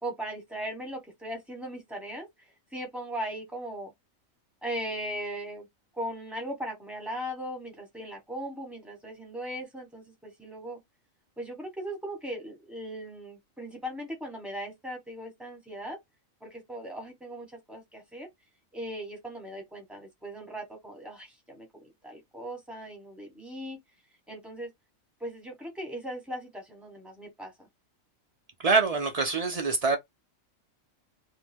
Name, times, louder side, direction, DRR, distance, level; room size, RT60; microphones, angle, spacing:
voice 1, 0.0-3.9 4.6-5.7 5.9-10.8 11.4-16.0 16.4-18.3 18.7-23.8 24.3-24.7 25.2-27.7, right 1 dB, ahead, 0.9 m, -38 dB
voice 2, 28.6-30.0, right 4 dB, 75° right, 0.3 m, -25 dB
2.6 x 2.1 x 3.4 m
omnidirectional pair, 1.4 m